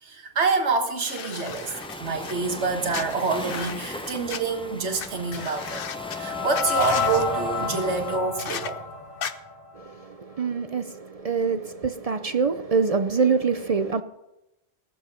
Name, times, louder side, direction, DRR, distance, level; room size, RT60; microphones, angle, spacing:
voice 1, 0.0-5.8 6.2-8.8, right 4 dB, 85° right, 1.7 m, -27 dB
sound 1, 1.0-2.3 2.9-4.4 5.0-5.1 5.3-6.2 6.5-7.2 8.4-8.7 9.2-9.3, left 7 dB, 60° left, 0.9 m, -35 dB
Waves surf, 1.5-8.2, left 1 dB, 5° left, 0.7 m, -39 dB
sound 2, 4.9-10.0, left 4 dB, 40° left, 4.0 m, -30 dB
voice 2, 9.7-14.0, right 5 dB, 45° right, 0.5 m, -25 dB
17.0 x 7.2 x 5.5 m
omnidirectional pair, 1.1 m